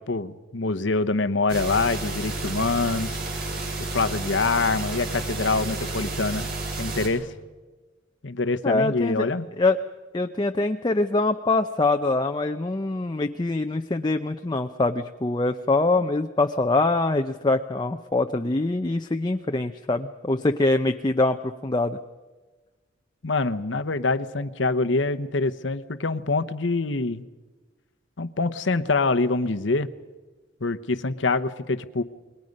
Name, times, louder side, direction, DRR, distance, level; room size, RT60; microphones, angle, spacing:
voice 1, 0.1-3.2 3.9-6.5 6.8-7.3 8.2-9.5 23.2-27.2 28.2-29.9 30.6-32.0, left 3 dB, 70° left, 10 dB, 1.0 m, -25 dB
sound 1, 1.5-7.1, right 2 dB, 50° right, 6.0 m, -31 dB
voice 2, 8.6-9.3 9.6-9.8 10.1-22.0, left 2 dB, 20° left, 6 dB, 0.6 m, -24 dB
29.0 x 21.5 x 5.4 m, 1.3 s
head